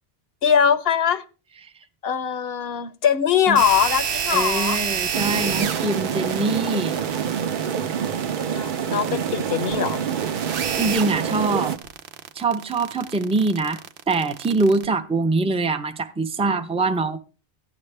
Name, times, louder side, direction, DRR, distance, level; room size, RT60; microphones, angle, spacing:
voice 1, 0.4-1.2 2.0-4.8 8.4-10.1, left 8 dB, 70° left, 0.9 m, -21 dB
sound 1, 3.6-14.9, right 7 dB, 85° right, 1.0 m, -30 dB
voice 2, 4.3-7.0 10.8-11.7 12.3-13.8 14.1-17.2, right 3 dB, 5° right, 0.5 m, -23 dB
sound 2, 5.1-11.8, right 8 dB, 55° right, 0.8 m, -27 dB
13.0 x 10.0 x 3.3 m
omnidirectional pair, 1.1 m